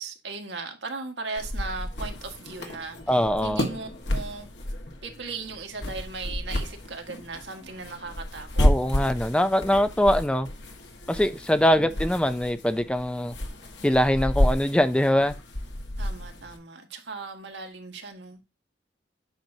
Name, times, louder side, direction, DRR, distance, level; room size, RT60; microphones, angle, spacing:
voice 1, 0.0-4.5 5.0-8.7 11.5-12.2 16.0-18.4, right 4 dB, 90° right, 1.7 m, -38 dB
sound 1, 1.4-16.6, left 1 dB, 85° left, 1.6 m, -31 dB
voice 2, 3.1-3.6 8.6-10.5 11.1-13.3 13.8-15.3, equal, 5° left, 0.4 m, -23 dB
8.9 x 5.9 x 2.8 m
head